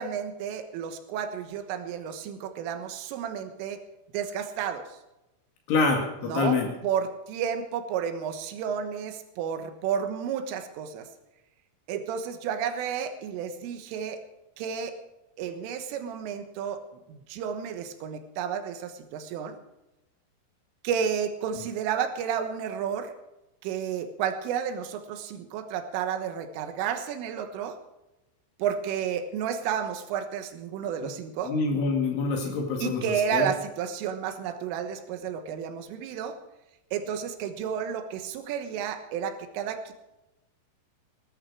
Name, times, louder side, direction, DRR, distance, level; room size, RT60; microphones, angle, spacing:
voice 1, 0.0-3.8 4.1-5.0 6.2-11.1 11.9-14.2 14.6-15.0 15.4-16.8 17.1-19.6 20.8-23.1 23.6-27.8 28.6-31.5 32.8-36.4 36.9-39.9, right 8 dB, 80° right, 8 dB, 3.8 m, -31 dB
voice 2, 5.7-6.7 31.5-33.5, left 4 dB, 70° left, 1 dB, 4.4 m, -26 dB
19.5 x 12.5 x 4.7 m, 0.98 s
omnidirectional pair, 5.8 m